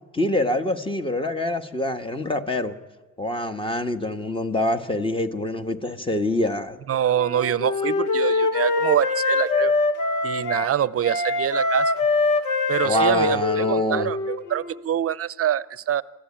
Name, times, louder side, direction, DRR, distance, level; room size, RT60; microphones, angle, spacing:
voice 1, 0.1-2.7 3.2-6.8 12.8-14.1, left 1 dB, 15° left, 8 dB, 1.6 m, -25 dB
voice 2, 6.9-9.7 10.2-11.9 12.7-16.0, right 10 dB, 50° right, 19 dB, 0.7 m, -25 dB
Wind instrument woodwind instrument, 7.2-10.7 11.0-14.8, left 3 dB, 90° left, 1.7 m, -23 dB
27.5 x 14.5 x 8.7 m, 1.3 s
cardioid pair, 90°, 30 cm